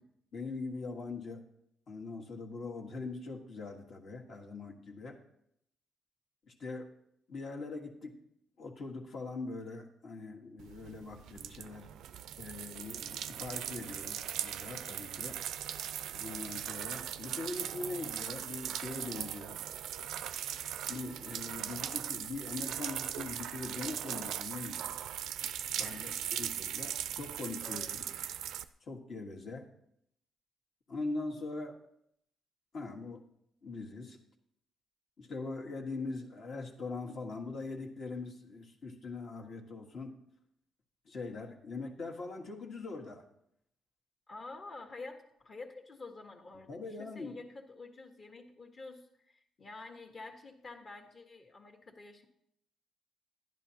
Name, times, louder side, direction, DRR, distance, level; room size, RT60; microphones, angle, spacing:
voice 1, 0.3-1.4 1.9-5.2 6.5-6.9 7.3-8.1 8.6-11.9 12.4-15.4 16.2-19.6 20.9-24.9 25.8-26.1 26.4-28.0 28.8-29.7 30.9-31.8 32.7-33.2 33.6-34.2 35.2-40.1 41.0-43.2 46.7-47.4, left 3 dB, 55° left, 2 dB, 1.5 m, -42 dB
sound 1, 10.6-28.6, right 10 dB, 80° right, 0.3 m, -39 dB
voice 2, 25.7-26.3 27.6-28.4 44.3-52.3, left 3 dB, 40° left, 5 dB, 1.4 m, -49 dB
10.5 x 10.5 x 2.8 m, 0.74 s
cardioid pair, 90°, 0 cm